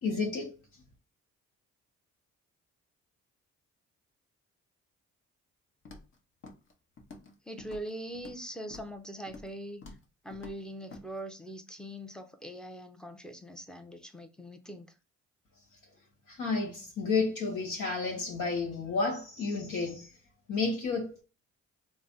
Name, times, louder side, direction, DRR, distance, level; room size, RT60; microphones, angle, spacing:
voice 1, 0.0-0.5 16.3-20.1 20.5-21.2, left 4 dB, 70° left, 1.2 m, -31 dB
Walk footsteps, 5.9-6.2 6.4-6.7 7.0-7.3 7.6-8.4 8.7-9.0 9.3-9.6 9.8-10.0 10.3-10.6 10.9-11.0, left 3 dB, 40° left, 0.9 m, -48 dB
voice 2, 7.5-9.8 10.2-14.9, right 1 dB, 5° left, 0.6 m, -42 dB
3.3 x 2.1 x 3.9 m
cardioid pair, 90°, 30 cm